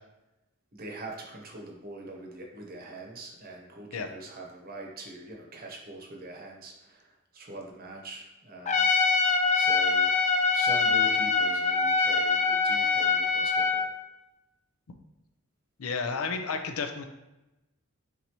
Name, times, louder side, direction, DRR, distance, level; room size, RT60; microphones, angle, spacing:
voice 1, 0.7-9.2 9.5-10.1 10.5-13.9, right 2 dB, 45° right, 1 dB, 0.8 m, -43 dB
Trumpet, 8.7-13.9, left 4 dB, 35° left, 0.3 m, -24 dB
voice 2, 15.8-17.0, left 5 dB, 85° left, 6 dB, 0.5 m, -32 dB
4.6 x 4.0 x 2.9 m, 0.98 s
head